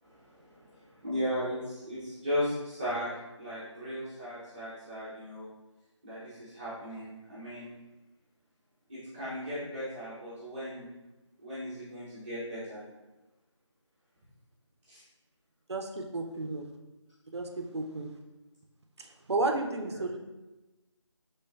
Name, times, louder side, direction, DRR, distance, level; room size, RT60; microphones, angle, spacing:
voice 1, 0.0-3.1 3.4-5.5 6.0-7.8 8.9-10.9 11.4-12.8 14.9-15.0 19.8-20.2, equal, 20° right, -11 dB, 0.7 m, -36 dB
voice 2, 15.7-16.7 17.3-18.1 19.0-20.2, right 2 dB, 60° right, 4 dB, 0.5 m, -32 dB
4.2 x 3.1 x 2.3 m, 1.1 s
figure-of-eight pair, 170°, 16 cm